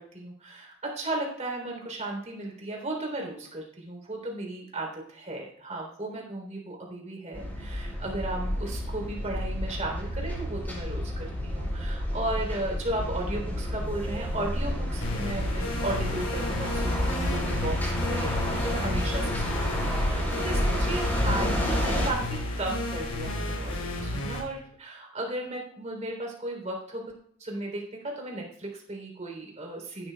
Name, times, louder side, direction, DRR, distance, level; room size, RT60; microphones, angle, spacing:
voice 1, 0.0-27.1 27.4-30.1, right 2 dB, 30° right, 1 dB, 3.4 m, -35 dB
sound 1, 7.3-22.1, left 1 dB, 10° left, 5.7 m, -30 dB
sound 2, 15.0-24.4, left 1 dB, 80° left, 5.6 m, -32 dB
16.0 x 12.0 x 2.3 m, 0.65 s
head